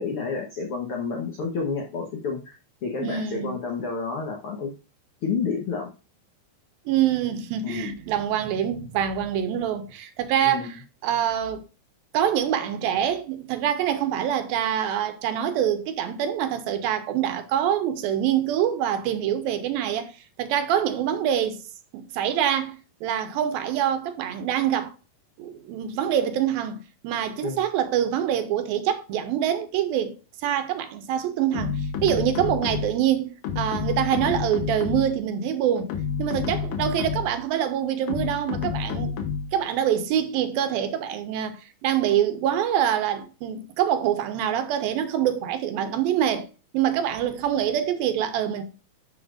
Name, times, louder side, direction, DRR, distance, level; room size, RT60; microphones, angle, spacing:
voice 1, 0.0-2.6 2.8-4.7 5.2-5.9 7.6-8.0 10.4-10.8 27.4-27.6, left 5 dB, 85° left, 1.2 m, -30 dB
voice 2, 3.0-3.5 6.9-10.8 11.0-11.6 12.1-20.1 20.4-21.6 21.9-24.9 25.4-30.2 30.4-35.9 36.2-39.2 39.5-46.5 46.7-48.6, right 10 dB, 80° right, 2.5 m, -25 dB
sound 1, 31.5-33.1 33.4-35.2 35.8-37.4 38.1-39.6, left 6 dB, 70° left, 2.4 m, -29 dB
11.5 x 5.8 x 2.5 m
omnidirectional pair, 4.4 m